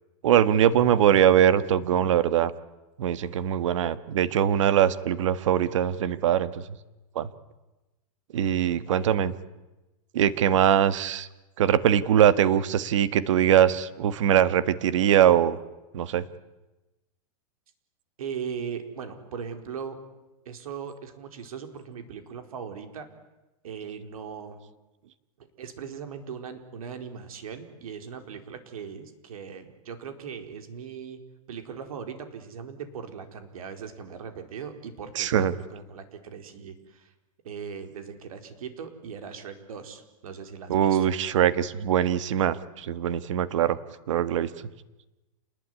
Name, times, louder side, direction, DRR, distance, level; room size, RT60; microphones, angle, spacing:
voice 1, 0.2-2.5 3.0-6.6 7.1-7.3 8.3-9.3 10.1-11.3 11.6-15.6 15.9-16.3 35.1-35.5 40.7-43.8 44.1-44.5, right 10 dB, 60° right, 14 dB, 1.6 m, -22 dB
voice 2, 8.7-9.1 18.2-20.0 20.4-23.1 23.6-24.6 25.4-31.2 31.5-37.1 37.4-41.1, right 7 dB, 80° right, 7 dB, 4.5 m, -39 dB
28.5 x 20.5 x 9.7 m, 1.0 s
supercardioid pair, 175°, 18 cm